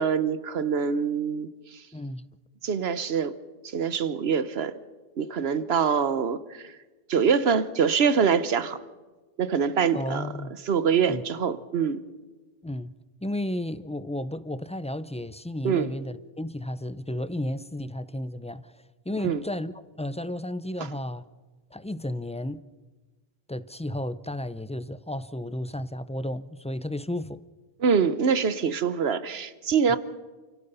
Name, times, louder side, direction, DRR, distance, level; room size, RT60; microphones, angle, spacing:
voice 1, 0.0-1.8 2.6-3.3 3.6-4.7 5.2-6.8 7.1-8.8 9.4-10.3 10.6-12.0 15.6-15.9 19.2-19.4 20.8-20.9 27.8-30.0, right 6 dB, 75° right, 1.2 m, -24 dB
voice 2, 1.9-2.3 9.9-10.5 11.1-11.2 12.6-12.9 13.2-18.7 19.1-19.7 20.0-21.2 21.7-22.6 23.5-27.4 29.9-30.0, left 1 dB, 10° left, 0.3 m, -33 dB
29.0 x 17.0 x 5.6 m
omnidirectional pair, 1.0 m